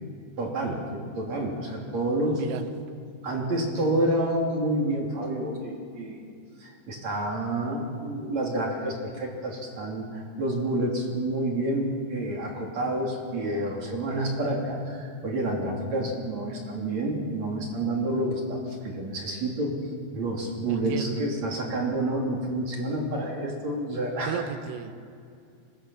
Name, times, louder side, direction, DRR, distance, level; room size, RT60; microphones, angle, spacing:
voice 1, 0.4-2.4 3.2-6.2 6.6-19.8 20.1-24.4, right 1 dB, 40° right, -1 dB, 3.7 m, -29 dB
voice 2, 2.4-2.7 20.7-21.3 24.3-24.9, right 9 dB, 85° right, 8 dB, 3.8 m, -34 dB
24.5 x 20.5 x 7.2 m, 2.4 s
omnidirectional pair, 5.7 m